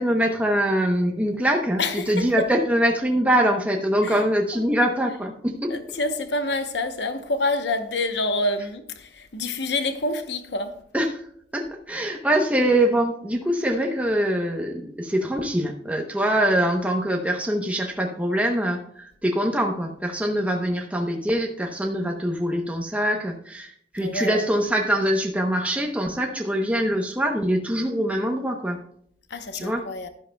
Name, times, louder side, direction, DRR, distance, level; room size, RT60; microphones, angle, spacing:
voice 1, 0.0-5.7 10.9-11.2 11.5-28.8 29.5-29.8, right 1 dB, 10° right, 0.8 m, -23 dB
voice 2, 1.8-2.5 4.0-4.3 4.5-4.7 5.1-5.2 5.7-10.8 24.0-24.6 29.3-30.1, left 2 dB, 65° left, 0.9 m, -27 dB
12.0 x 10.5 x 2.2 m
head